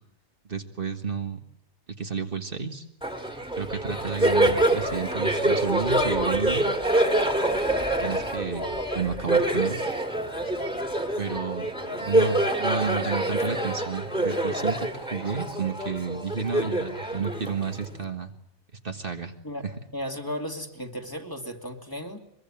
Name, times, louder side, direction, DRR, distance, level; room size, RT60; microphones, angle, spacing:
voice 1, 0.5-1.4 2.0-2.8 3.6-6.7 8.0-9.8 11.2-18.3 18.8-19.3, right 5 dB, 50° right, 5 dB, 1.8 m, -31 dB
Laughter, 3.0-18.0, right 1 dB, 5° right, 2.4 m, -26 dB
voice 2, 19.9-22.2, equal, 20° left, 3 dB, 2.5 m, -35 dB
23.5 x 23.0 x 8.8 m, 0.76 s
omnidirectional pair, 1.2 m